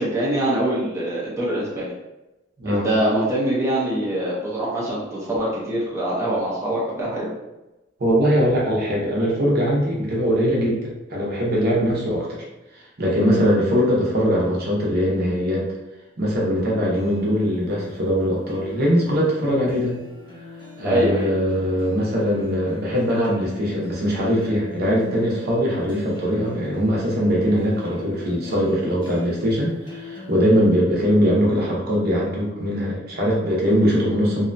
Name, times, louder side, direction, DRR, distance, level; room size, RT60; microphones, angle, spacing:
voice 1, 0.0-1.9 2.6-7.3 20.8-21.3, right 1 dB, 15° right, -7 dB, 0.6 m, -24 dB
voice 2, 2.6-2.9 8.0-12.4 13.0-15.7 16.2-20.0 20.8-34.4, equal, 55° right, -4 dB, 0.7 m, -21 dB
sound 1, 16.9-30.4, left 1 dB, 25° left, 0.7 m, -40 dB
2.7 x 2.2 x 2.5 m, 1.0 s
head